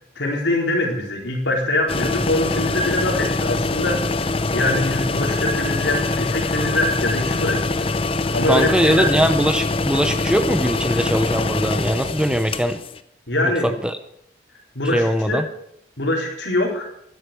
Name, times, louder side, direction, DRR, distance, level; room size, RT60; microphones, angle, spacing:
voice 1, 0.2-8.0 8.3-9.2 10.9-11.0 13.3-13.7 14.7-15.4 16.0-16.9, left 1 dB, 75° left, 0 dB, 4.2 m, -23 dB
sound 1, 1.9-13.0, left 3 dB, 30° left, 0.6 m, -24 dB
voice 2, 8.5-12.8 13.4-14.0 14.9-15.5, equal, 5° right, 9 dB, 0.7 m, -21 dB
12.5 x 11.0 x 7.0 m, 0.73 s
head